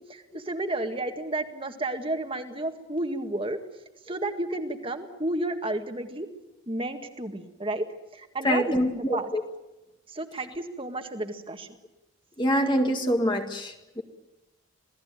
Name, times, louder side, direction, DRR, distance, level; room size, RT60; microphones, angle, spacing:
voice 1, 0.1-3.6 4.1-6.3 6.7-7.9 8.1-9.3 10.1-11.7, right 2 dB, 25° right, 6 dB, 1.9 m, -32 dB
voice 2, 8.4-9.4 12.4-14.0, equal, 20° left, 4 dB, 1.8 m, -25 dB
27.5 x 18.0 x 9.1 m, 0.98 s
head